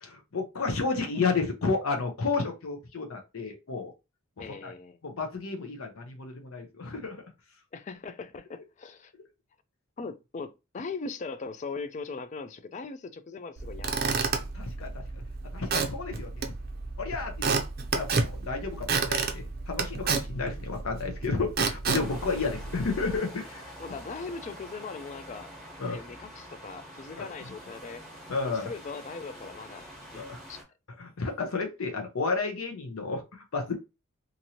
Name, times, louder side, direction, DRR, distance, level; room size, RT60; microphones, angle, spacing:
voice 1, 0.0-3.9 4.6-4.7 5.0-7.2 14.5-15.0 15.5-16.5 17.0-17.5 17.9-23.7 25.8-26.0 27.2-27.5 28.3-28.7 30.2-30.4 31.0-33.7, left 4 dB, 75° left, 0.6 m, -32 dB
voice 2, 4.4-5.0 7.7-9.1 10.0-14.0 23.8-25.5 25.8-28.0 28.5-30.6, left 4 dB, 35° left, 0.3 m, -40 dB
Squeak / Wood, 13.6-23.2, right 4 dB, 45° right, 0.5 m, -31 dB
sound 1, 21.9-30.6, equal, 5° left, 0.9 m, -46 dB
2.9 x 2.6 x 2.8 m
head